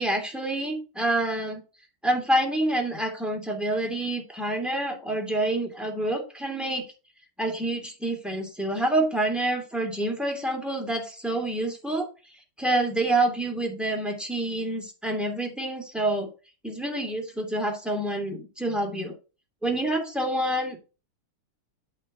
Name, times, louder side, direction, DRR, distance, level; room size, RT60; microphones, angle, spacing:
voice 1, 0.0-1.6 2.0-6.8 7.4-12.1 12.6-16.3 16.6-19.1 19.6-20.8, right 1 dB, ahead, 2 dB, 2.5 m, -27 dB
8.9 x 4.1 x 7.2 m, 0.33 s
omnidirectional pair, 2.2 m